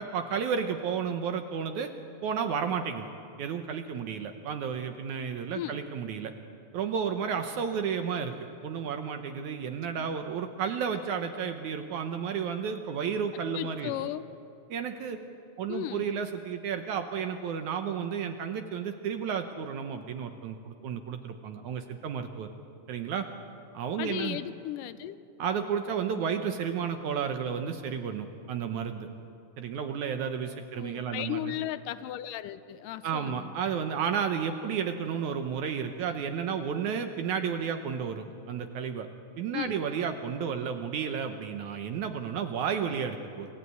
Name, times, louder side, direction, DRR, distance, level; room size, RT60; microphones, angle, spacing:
voice 1, 0.0-1.9 2.2-3.1 3.4-6.3 6.7-8.4 8.6-14.0 14.7-15.2 15.6-22.5 22.9-23.3 23.7-24.4 25.4-29.1 29.6-31.6 33.0-39.1 39.4-43.5, right 7 dB, 70° right, 7 dB, 2.0 m, -32 dB
voice 2, 13.5-14.3 15.7-16.1 24.0-25.2 30.8-33.5 39.5-39.8, left 13 dB, 75° left, 14 dB, 2.1 m, -35 dB
25.5 x 16.0 x 9.4 m, 2.5 s
omnidirectional pair, 4.1 m